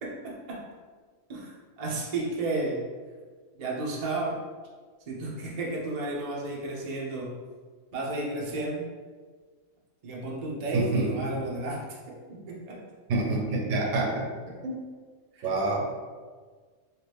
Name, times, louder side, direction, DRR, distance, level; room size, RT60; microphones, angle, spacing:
voice 1, 0.0-0.6 1.3-2.8 3.6-4.4 5.1-7.3 7.9-8.9 10.0-12.8 14.1-14.2 14.5-14.6 15.3-15.5, right 2 dB, 55° right, -3 dB, 0.4 m, -33 dB
voice 2, 10.7-11.4 13.1-14.3 14.6-14.7 15.4-15.9, right 2 dB, 70° right, 0 dB, 0.9 m, -27 dB
2.9 x 2.5 x 3.3 m, 1.5 s
omnidirectional pair, 1.5 m